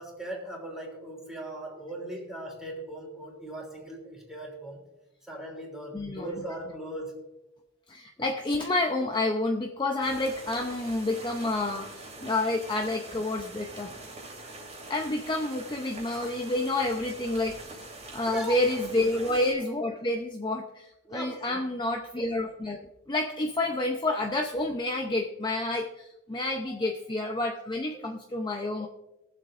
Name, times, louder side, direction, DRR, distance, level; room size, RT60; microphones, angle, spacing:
voice 1, 0.0-4.8 5.2-7.3 18.3-18.8 19.1-19.4 21.0-21.7 26.6-27.0 27.9-28.1, right 1 dB, ahead, -1 dB, 3.0 m, -39 dB
voice 2, 5.9-6.3 7.9-14.0 14.9-17.8 18.1-22.8 23.1-28.9, left 2 dB, 20° left, 2 dB, 0.6 m, -29 dB
sound 1, 10.0-19.5, right 2 dB, 35° right, 2.9 m, -44 dB
22.0 x 7.6 x 2.5 m, 0.99 s
head